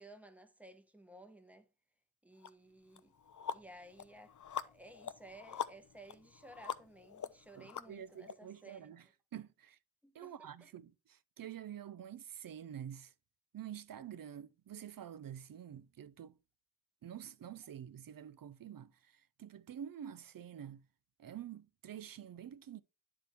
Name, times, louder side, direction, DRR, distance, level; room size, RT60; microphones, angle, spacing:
voice 1, 0.0-1.7 2.2-3.2 3.5-8.9 10.0-10.7, right 1 dB, 5° right, 0.9 m, -56 dB
sound 1, 2.4-2.5 3.0-8.3, left 8 dB, 50° left, 0.5 m, -44 dB
voice 2, 7.6-9.1 9.3-9.8 10.1-13.1 13.5-16.4 17.0-20.9 21.2-22.8, right 9 dB, 60° right, 0.5 m, -48 dB
9.8 x 3.4 x 4.2 m
wide cardioid pair, 55°, 38 cm